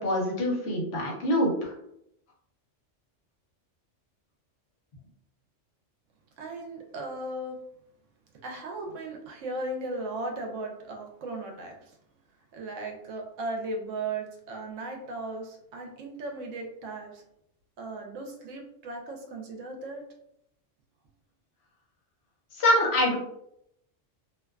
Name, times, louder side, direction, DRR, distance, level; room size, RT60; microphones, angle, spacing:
voice 1, 0.0-1.7 22.6-23.1, left 1 dB, 60° left, -2 dB, 1.0 m, -25 dB
voice 2, 6.4-7.6 8.4-12.0 12.5-17.2 17.8-20.0, right 2 dB, 85° right, 2 dB, 1.0 m, -36 dB
2.5 x 2.3 x 2.3 m, 0.75 s
omnidirectional pair, 1.3 m